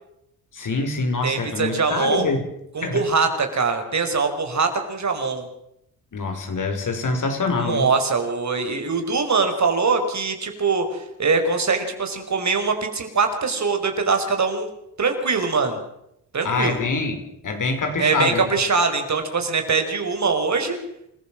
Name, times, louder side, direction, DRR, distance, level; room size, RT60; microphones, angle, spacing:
voice 1, 0.5-2.4 2.8-3.0 6.1-7.9 16.4-18.4, left 3 dB, 50° left, 5 dB, 5.6 m, -25 dB
voice 2, 1.2-2.3 2.7-5.4 7.6-14.7 15.0-15.8 16.3-16.8 18.0-20.8, right 4 dB, 45° right, 6 dB, 5.1 m, -22 dB
28.0 x 14.5 x 7.5 m, 0.81 s
supercardioid pair, 65°, 40 cm